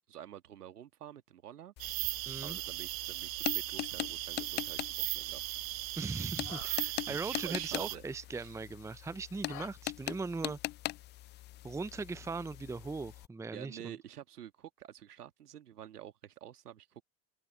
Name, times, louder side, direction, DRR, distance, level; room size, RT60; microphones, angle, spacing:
voice 1, 0.1-1.7 2.4-5.4 7.1-8.0 8.3-8.5 13.5-17.0, right 10 dB, 75° right, 2.0 m, -49 dB
sound 1, 1.8-13.3, left 16 dB, 25° left, 0.4 m, -42 dB
sound 2, 1.8-8.0, right 23 dB, 60° right, 0.8 m, -37 dB
voice 2, 2.3-2.6 6.0-10.6 11.6-13.9, right 4 dB, 5° right, 0.7 m, -39 dB
sound 3, 3.5-9.7, left 20 dB, 65° left, 4.9 m, -55 dB
open air
figure-of-eight pair, 70°, 46 cm